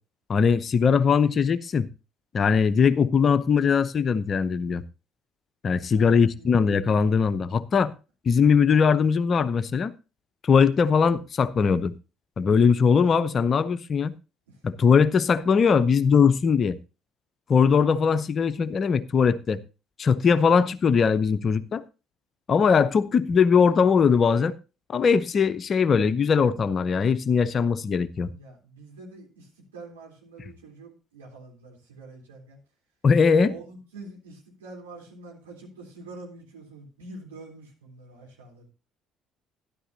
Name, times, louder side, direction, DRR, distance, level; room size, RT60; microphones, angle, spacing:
voice 1, 0.3-1.9 2.3-4.8 5.6-7.9 8.2-9.9 10.4-11.9 12.4-14.1 14.6-16.8 17.5-19.6 20.0-21.8 22.5-24.5 24.9-28.3 33.0-33.5, left 6 dB, 40° left, 0.7 m, -20 dB
voice 2, 5.9-6.5 14.5-14.6 28.3-32.6 33.4-38.7, right 2 dB, 75° right, 3.6 m, -45 dB
12.5 x 12.0 x 2.8 m
figure-of-eight pair, 50°, 0 cm